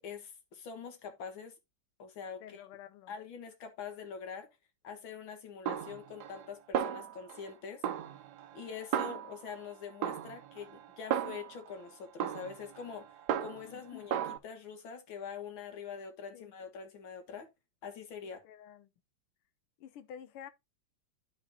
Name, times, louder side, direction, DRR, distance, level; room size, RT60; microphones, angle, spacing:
voice 1, 0.0-1.5 2.0-2.6 3.1-4.5 4.8-7.8 8.5-14.2 14.4-17.5 17.8-18.4, left 6 dB, 65° left, 2.2 m, -44 dB
voice 2, 2.4-3.1 13.6-14.1 16.3-16.5 18.4-18.9 19.8-20.5, left 9 dB, 85° left, 1.6 m, -50 dB
Snare drum, 5.7-6.5 6.7-7.5 7.8-9.6 10.0-11.7 12.2-13.8 14.1-14.4, right 9 dB, 80° right, 0.9 m, -35 dB
11.0 x 5.0 x 2.7 m
omnidirectional pair, 2.4 m